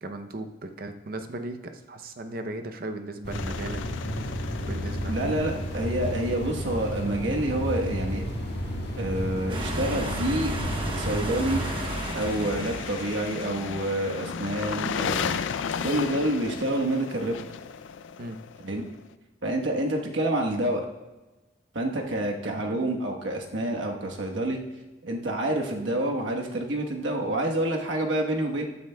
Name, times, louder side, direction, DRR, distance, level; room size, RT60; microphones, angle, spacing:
voice 1, 0.0-3.8 4.6-5.5 18.2-18.4 22.4-22.6, right 2 dB, 50° right, 7 dB, 0.7 m, -37 dB
sound 1, 3.2-11.9, equal, 65° left, 1.6 m, -32 dB
sound 2, 3.3-7.2 11.3-19.0, left 6 dB, 80° left, 0.4 m, -35 dB
voice 2, 5.1-8.3 9.0-10.5 10.9-11.7 12.1-15.3 15.8-17.4 18.6-18.8 19.4-20.8 21.7-24.6 25.0-28.7, right 1 dB, 75° right, 1 dB, 1.2 m, -28 dB
sound 3, 9.5-13.7, right 1 dB, 25° right, 1.1 m, -33 dB
14.5 x 9.3 x 2.3 m, 1.1 s
head